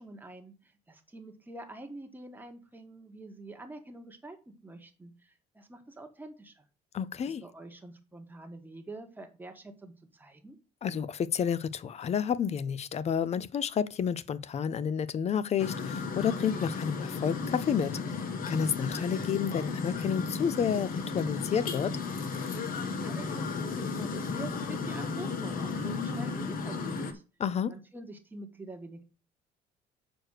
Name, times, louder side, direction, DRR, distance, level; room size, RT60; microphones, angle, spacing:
voice 1, 0.0-6.6 7.4-10.6 22.8-27.2 27.7-29.0, right 2 dB, 10° right, 1.4 m, -46 dB
voice 2, 6.9-7.4 10.8-22.0 27.4-27.7, left 7 dB, 40° left, 0.6 m, -30 dB
sound 1, 15.6-27.1, left 4 dB, 55° left, 1.3 m, -34 dB
6.2 x 4.8 x 6.5 m
cardioid pair, 110°, 17 cm